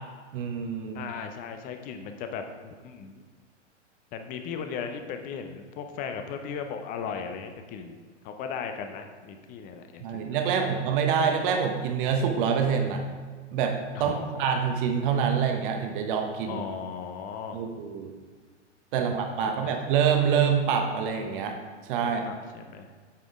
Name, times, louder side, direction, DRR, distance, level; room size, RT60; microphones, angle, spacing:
voice 1, 0.3-1.0 10.0-13.0 13.5-14.1 14.4-16.6 17.5-18.1 18.9-21.5 21.9-22.2, right 7 dB, 45° right, 4 dB, 1.0 m, -26 dB
voice 2, 0.9-3.2 4.1-8.0 8.2-10.8 13.9-14.5 16.5-17.7 18.9-19.7 22.0-22.9, left 6 dB, 25° left, 6 dB, 0.6 m, -37 dB
8.5 x 5.2 x 3.6 m, 1.5 s
figure-of-eight pair, 110°, 36 cm